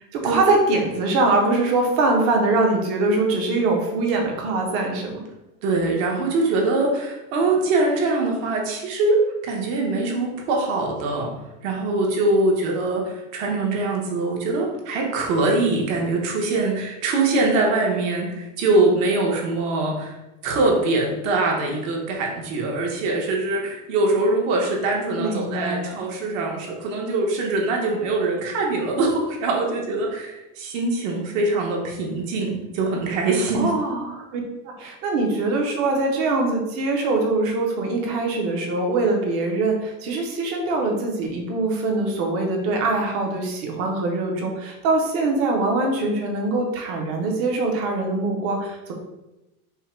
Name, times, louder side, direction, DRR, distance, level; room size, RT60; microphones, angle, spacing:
voice 1, 0.1-5.2 25.2-26.0 33.5-34.4 34.7-48.9, right 2 dB, 30° right, 2 dB, 0.7 m, -23 dB
voice 2, 5.6-11.3 11.6-20.1 20.4-33.7, right 2 dB, 55° right, -1 dB, 1.1 m, -23 dB
5.6 x 2.1 x 4.4 m, 0.96 s
supercardioid pair, 175°, 44 cm